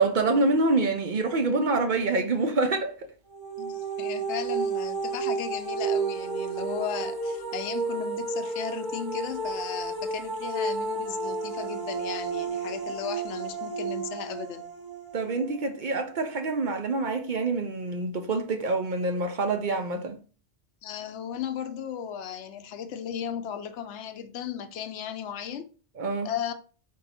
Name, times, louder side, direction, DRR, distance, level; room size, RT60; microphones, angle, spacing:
voice 1, 0.0-3.1 15.1-20.2 26.0-26.3, right 3 dB, 50° right, 0.7 m, -26 dB
sound 1, 3.3-16.2, right 4 dB, 20° right, 0.8 m, -32 dB
voice 2, 3.6-14.7 20.8-25.7 26.2-26.5, left 8 dB, 85° left, 0.9 m, -36 dB
4.5 x 2.7 x 4.1 m
omnidirectional pair, 1.2 m